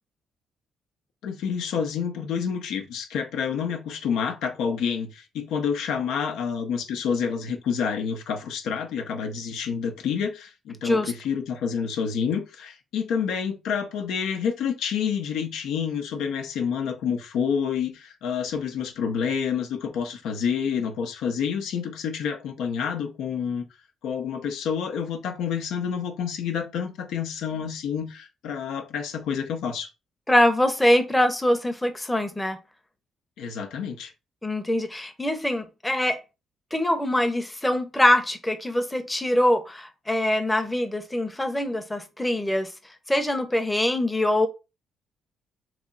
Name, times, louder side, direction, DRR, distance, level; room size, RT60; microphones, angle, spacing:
voice 1, 1.2-23.7 24.0-29.9 33.4-34.1, left 7 dB, 85° left, 0.7 m, -28 dB
voice 2, 30.3-32.6 34.4-36.2 36.7-42.7 43.1-44.5, left 1 dB, 10° left, 0.7 m, -23 dB
3.2 x 3.0 x 3.9 m
cardioid pair, 90°, 0 cm